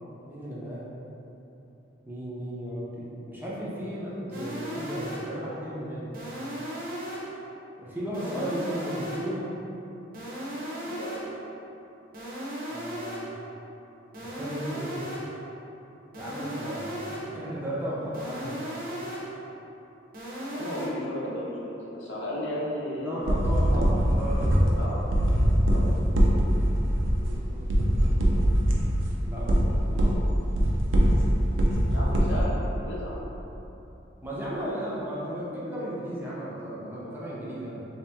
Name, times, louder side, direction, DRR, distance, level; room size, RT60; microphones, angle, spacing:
voice 1, 0.3-0.9 2.1-6.1 7.8-9.5 12.7-13.3 14.4-15.1 16.1-18.6 22.9-24.8 25.7-26.0 26.9-28.5 29.2-30.2 34.2-37.9, equal, 10° right, -7 dB, 0.5 m, -35 dB
sound 1, 4.3-5.4 6.1-7.4 8.1-9.4 10.1-11.4 12.1-13.4 14.1-15.4 16.1-17.4 18.1-19.4 20.1-20.9, right 1 dB, 50° right, 0.7 m, -36 dB
voice 2, 10.8-11.1 20.5-23.3 24.7-25.2 25.7-25.9 31.9-33.2, left 1 dB, 75° left, -5 dB, 0.7 m, -34 dB
sound 2, 23.2-32.5, equal, 90° right, 0.5 m, -23 dB
3.3 x 2.8 x 3.4 m, 3.0 s
head